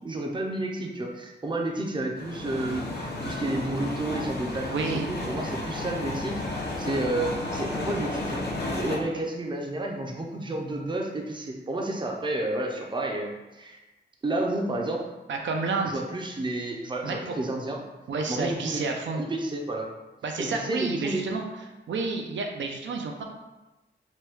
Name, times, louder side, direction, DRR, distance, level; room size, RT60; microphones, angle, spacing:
voice 1, 0.0-6.4 6.8-8.4 8.7-13.8 14.2-15.1 15.8-17.8 18.3-18.8 19.1-19.9 20.4-21.3, right 2 dB, 25° right, 1 dB, 0.5 m, -31 dB
sound 1, 2.2-9.0, left 2 dB, 60° left, 0.6 m, -32 dB
voice 2, 4.7-5.1 15.3-16.0 17.0-17.3 18.1-19.2 20.2-21.4 21.9-23.2, right 4 dB, 80° right, 2 dB, 0.4 m, -30 dB
3.0 x 2.2 x 3.3 m, 1.1 s
wide cardioid pair, 90°, 19 cm